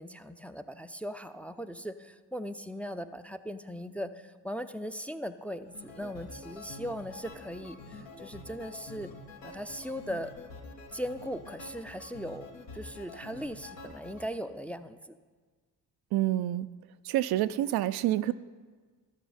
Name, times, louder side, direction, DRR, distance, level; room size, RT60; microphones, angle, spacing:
voice 1, 0.0-9.1 9.4-10.3 10.9-12.5 12.7-15.2, equal, 5° left, 8 dB, 0.5 m, -39 dB
sound 1, 5.6-14.3, left 2 dB, 75° left, 1.6 m, -47 dB
voice 2, 16.1-16.7 17.0-18.3, right 14 dB, 60° right, 13 dB, 0.5 m, -27 dB
13.5 x 6.2 x 5.5 m, 1.5 s
hypercardioid pair, 40°, 44 cm